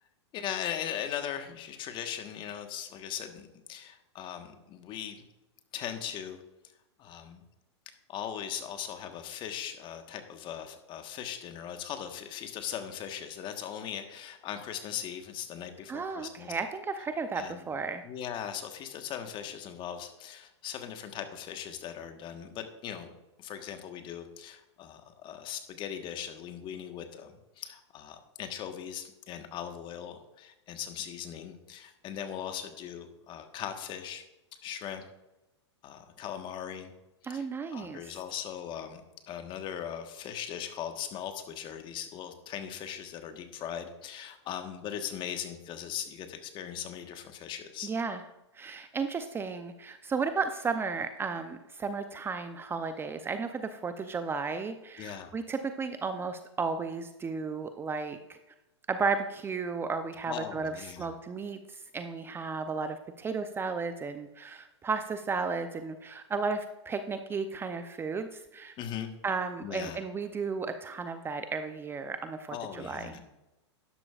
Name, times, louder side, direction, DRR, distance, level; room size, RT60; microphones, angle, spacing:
voice 1, 0.3-5.2 5.7-6.4 7.0-7.4 8.1-16.5 17.3-17.7 18.0-23.1 23.4-34.2 34.6-35.0 35.8-36.9 37.2-37.4 37.7-39.0 39.3-47.9 55.0-55.3 60.3-61.1 68.8-69.1 69.6-70.0 72.5-73.2, left 9 dB, 35° left, 6 dB, 1.4 m, -39 dB
voice 2, 15.9-18.0 37.2-38.2 47.8-48.2 48.5-58.4 58.9-68.7 69.2-73.2, right 4 dB, 15° right, 9 dB, 0.6 m, -34 dB
12.5 x 11.0 x 2.5 m, 0.98 s
hypercardioid pair, 115°, 15 cm